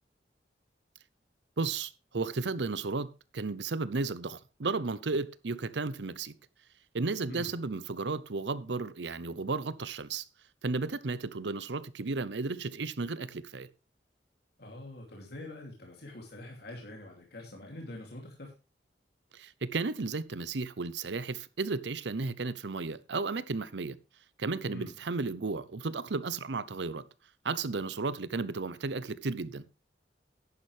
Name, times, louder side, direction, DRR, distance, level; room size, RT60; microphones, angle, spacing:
voice 1, 1.6-6.3 6.9-10.2 10.6-13.7 19.3-24.0 24.4-27.0 27.4-29.6, right 3 dB, 75° right, 0.7 m, -34 dB
voice 2, 7.3-7.6 14.6-18.5 24.7-24.9, left 1 dB, 65° left, 2.8 m, -45 dB
11.0 x 10.0 x 3.3 m
head